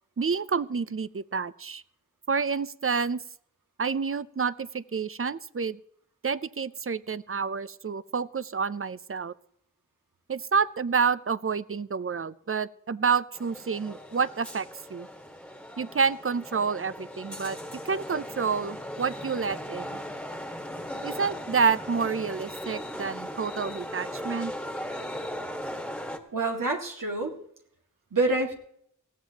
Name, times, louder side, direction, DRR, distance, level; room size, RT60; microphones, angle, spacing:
voice 1, 0.2-1.8 2.3-3.2 3.8-5.8 6.2-9.3 10.3-15.1 15.8-17.6 17.8-20.0 21.0-24.5, right 5 dB, 45° right, 17 dB, 0.6 m, -29 dB
sound 1, 13.3-26.2, equal, 5° left, 1.6 m, -38 dB
voice 2, 26.3-27.4 28.1-28.5, right 2 dB, 85° right, 1 dB, 2.0 m, -27 dB
19.0 x 15.0 x 2.9 m, 0.68 s
wide cardioid pair, 45°, 32 cm